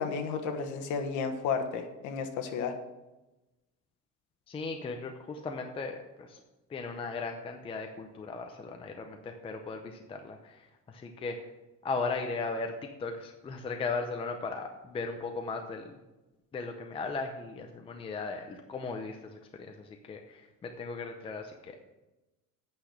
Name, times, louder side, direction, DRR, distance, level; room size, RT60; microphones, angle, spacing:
voice 1, 0.0-2.7, left 5 dB, 70° left, 6 dB, 1.4 m, -32 dB
voice 2, 4.5-6.4 6.7-11.5 11.8-12.7 13.0-15.9 16.5-21.9, left 4 dB, 20° left, 4 dB, 0.6 m, -37 dB
8.8 x 6.0 x 6.5 m, 1.0 s
cardioid pair, 165°, 31 cm